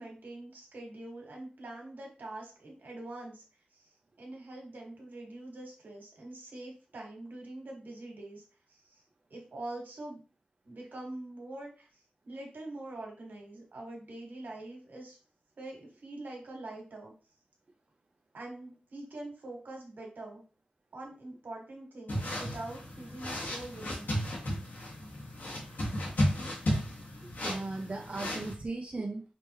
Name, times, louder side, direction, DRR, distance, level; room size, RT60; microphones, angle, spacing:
voice 1, 0.0-3.4 3.7-3.9 4.2-9.0 9.3-10.2 10.6-12.0 12.3-15.2 15.6-17.1 18.3-20.4 20.9-24.1, right 2 dB, 80° right, 0 dB, 1.8 m, -44 dB
sound 1, 22.1-28.5, equal, 80° left, 1.9 m, -34 dB
voice 2, 27.2-29.2, right 3 dB, 40° right, 1 dB, 0.6 m, -37 dB
5.2 x 3.3 x 3.1 m, 0.36 s
wide cardioid pair, 75°, 3 cm